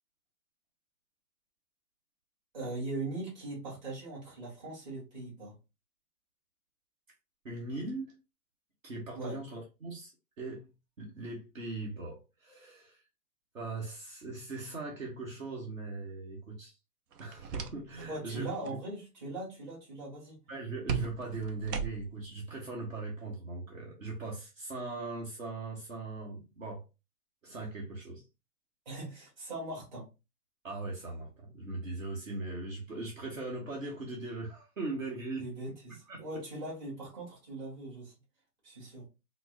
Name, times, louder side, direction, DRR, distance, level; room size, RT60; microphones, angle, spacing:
voice 1, 2.5-5.5 9.1-9.4 18.1-20.4 28.8-30.1 35.4-38.1 38.6-39.1, right 2 dB, 30° right, 1.5 m, -40 dB
voice 2, 7.4-8.1 8.8-10.1 10.4-10.7 11.0-13.0 13.5-16.7 17.2-18.8 20.5-26.8 27.4-28.2 30.6-35.5 36.1-36.2, right 3 dB, 55° right, 1.2 m, -40 dB
sound 1, 17.1-18.1 18.4-18.8 20.9-22.3, right 6 dB, 85° right, 0.7 m, -37 dB
4.3 x 2.1 x 2.7 m
hypercardioid pair, 180°, 47 cm